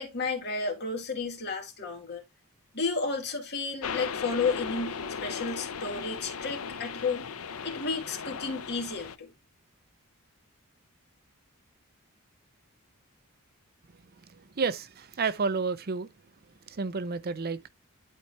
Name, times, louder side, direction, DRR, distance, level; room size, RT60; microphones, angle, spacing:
voice 1, 0.0-2.2 2.7-7.2 7.6-9.3, left 4 dB, 50° left, 2.4 m, -32 dB
sound 1, 3.8-9.2, left 6 dB, 70° left, 0.8 m, -37 dB
voice 2, 14.3-16.1 16.7-17.7, right 4 dB, 45° right, 0.6 m, -31 dB
11.5 x 4.5 x 2.7 m
head